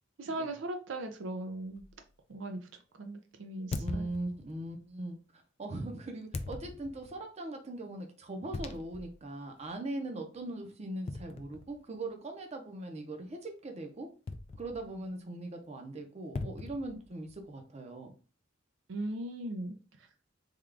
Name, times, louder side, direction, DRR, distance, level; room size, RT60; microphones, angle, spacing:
voice 1, 0.2-1.8 2.3-2.6 3.0-4.1 18.9-19.8, right 1 dB, 80° right, 5 dB, 0.5 m, -38 dB
sound 1, 1.8-2.0 3.7-4.7 6.3-7.2 8.5-9.2 9.6-9.7 11.1-12.0 14.3-15.0 16.3-17.5, left 3 dB, 30° left, 0.3 m, -40 dB
voice 2, 3.8-5.2 5.6-14.1 14.6-18.1, right 2 dB, 35° right, 4 dB, 0.6 m, -40 dB
3.6 x 2.3 x 3.3 m, 0.36 s
head